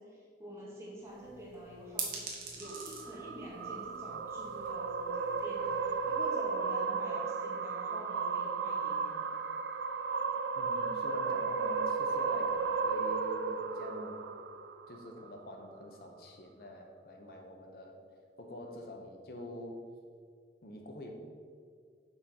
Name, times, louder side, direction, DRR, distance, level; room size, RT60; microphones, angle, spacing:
voice 1, 0.0-9.3, right 1 dB, 15° right, -5 dB, 1.2 m, -47 dB
sound 1, 1.0-6.3, right 4 dB, 50° right, 1.2 m, -45 dB
sound 2, 2.6-15.1, right 5 dB, 80° right, 0.4 m, -34 dB
voice 2, 10.6-14.3 14.9-18.0 18.4-19.9 20.6-21.1, left 1 dB, 55° left, 2 dB, 0.9 m, -46 dB
5.4 x 4.3 x 5.5 m, 2.1 s
head